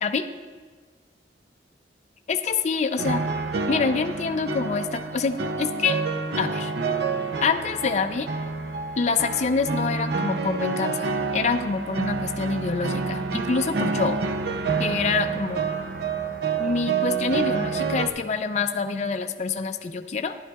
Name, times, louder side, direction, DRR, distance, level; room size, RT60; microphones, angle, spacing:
voice 1, 2.3-3.2 3.7-6.0 6.4-6.7 7.4-8.3 9.0-14.2 14.8-15.7 16.6-20.4, left 5 dB, 40° left, 7 dB, 0.4 m, -26 dB
sound 1, 3.0-18.1, right 4 dB, 65° right, 0.5 m, -28 dB
12.5 x 11.0 x 2.3 m, 1.5 s
head